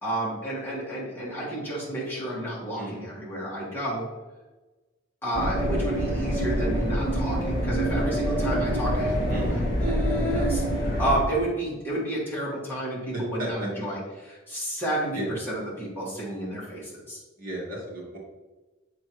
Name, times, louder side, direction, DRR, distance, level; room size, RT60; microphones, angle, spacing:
voice 1, 0.0-4.0 5.2-17.2, right 1 dB, 10° left, -7 dB, 2.0 m, -31 dB
voice 2, 2.7-3.1 9.3-9.6 13.1-13.7 15.1-15.4 17.4-18.2, right 1 dB, 45° right, -5 dB, 2.0 m, -33 dB
sound 1, 5.3-11.2, equal, 55° left, 1.9 m, -26 dB
7.1 x 4.2 x 3.1 m, 1.2 s
head